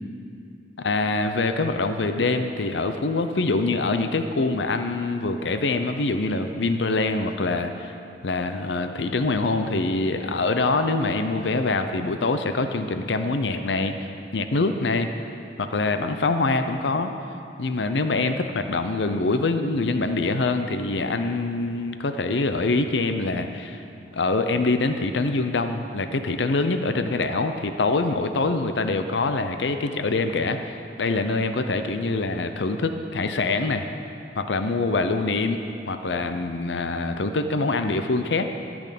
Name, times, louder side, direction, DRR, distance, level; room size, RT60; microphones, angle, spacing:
voice 1, 0.8-7.9 8.2-14.1 14.3-15.1 15.6-17.1 17.6-23.8 24.1-33.9 34.4-35.6 35.9-38.5, left 3 dB, 70° left, 7 dB, 0.7 m, -24 dB
14.0 x 6.2 x 8.4 m, 2.6 s
head